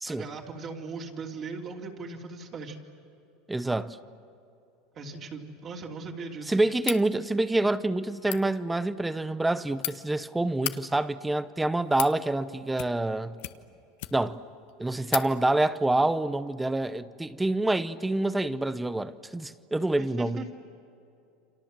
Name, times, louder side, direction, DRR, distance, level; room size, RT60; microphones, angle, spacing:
voice 1, 0.1-2.8 4.9-6.5 20.0-20.5, right 4 dB, 35° right, 3.0 m, -39 dB
voice 2, 3.5-4.0 6.5-13.3 14.1-14.4 14.8-20.4, right 2 dB, 5° right, 0.8 m, -27 dB
sound 1, 6.8-7.0 8.1-8.4 9.4-9.9 10.5-10.8 11.6-12.2 12.7-13.1 13.4-14.4 14.7-14.8 15.1-15.3, left 17 dB, 75° left, 1.2 m, -34 dB
29.5 x 26.0 x 7.6 m
supercardioid pair, 140°, 0 cm